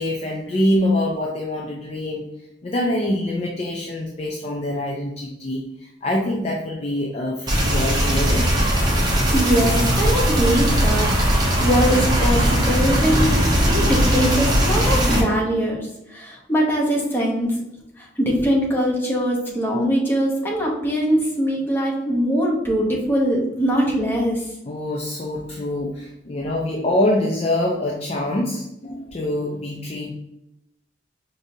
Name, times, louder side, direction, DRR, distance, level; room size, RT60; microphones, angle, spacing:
voice 1, 0.0-2.3 2.6-8.5 13.7-13.8 15.4-15.6 18.4-18.6 24.7-30.1, left 1 dB, 35° left, -2 dB, 0.4 m, -25 dB
sound 1, 7.5-15.2, equal, 20° right, 0.7 m, -19 dB
voice 2, 9.3-11.1 11.6-13.4 13.6-17.5 18.0-24.4, equal, 10° left, -2 dB, 0.7 m, -22 dB
4.9 x 2.6 x 2.7 m, 0.86 s
head